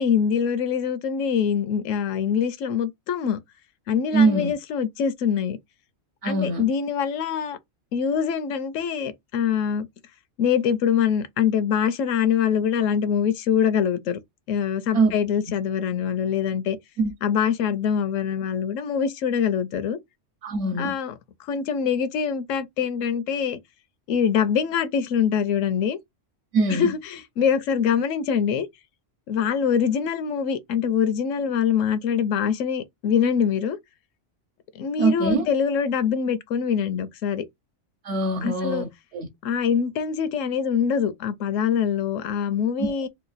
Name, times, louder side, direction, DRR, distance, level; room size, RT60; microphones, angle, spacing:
voice 1, 0.0-3.4 3.9-5.6 6.2-7.6 7.9-9.9 10.4-14.2 14.5-16.8 17.2-20.0 20.8-23.6 24.1-26.0 26.7-28.7 29.3-33.8 34.7-37.4 38.4-38.9 39.4-43.1, left 7 dB, 85° left, 1.0 m, -24 dB
voice 2, 4.1-4.5 6.2-6.7 14.9-15.1 17.0-17.1 20.4-20.9 26.5-26.9 35.0-35.5 38.0-39.3 42.8-42.9, right 3 dB, 65° right, 0.9 m, -22 dB
3.0 x 2.3 x 3.9 m
omnidirectional pair, 1.3 m